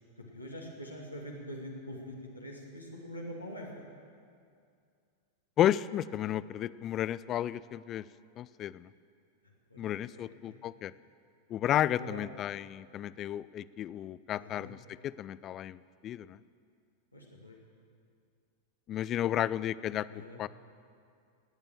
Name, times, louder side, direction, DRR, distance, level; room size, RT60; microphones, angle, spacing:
voice 1, 0.2-3.8 9.7-10.6 12.0-12.2 14.4-14.7 17.1-17.6 20.1-20.4, equal, 85° left, -2 dB, 1.9 m, -44 dB
voice 2, 5.6-8.0 8.4-8.9 9.8-10.9 11.5-15.8 16.0-16.4 18.9-20.1 20.4-20.5, left 11 dB, 30° left, 19 dB, 0.3 m, -32 dB
18.5 x 8.9 x 7.5 m, 2.3 s
figure-of-eight pair, 90°, 0 cm